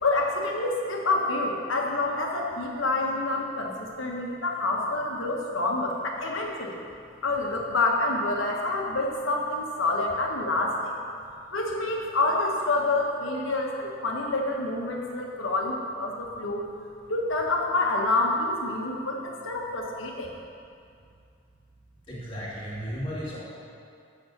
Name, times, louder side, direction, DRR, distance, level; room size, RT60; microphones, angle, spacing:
voice 1, 0.0-6.8 7.2-10.9 11.5-16.7 17.1-20.3, left 2 dB, 85° left, 0 dB, 1.3 m, -27 dB
voice 2, 22.1-23.4, equal, 25° left, -7 dB, 2.1 m, -34 dB
7.3 x 6.5 x 6.7 m, 2.4 s
head